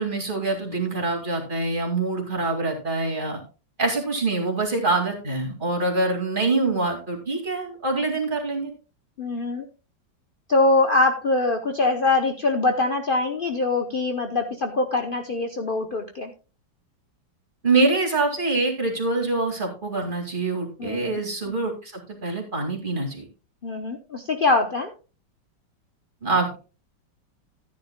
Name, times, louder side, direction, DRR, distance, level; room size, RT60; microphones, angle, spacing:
voice 1, 0.0-3.4 3.8-8.7 17.6-21.9 22.2-23.3 26.2-26.6, right 3 dB, 25° right, 1 dB, 2.3 m, -25 dB
voice 2, 9.2-9.6 10.5-16.3 20.8-21.2 23.6-24.9, left 2 dB, 65° left, 5 dB, 0.5 m, -23 dB
14.5 x 9.9 x 2.2 m, 0.33 s
omnidirectional pair, 2.1 m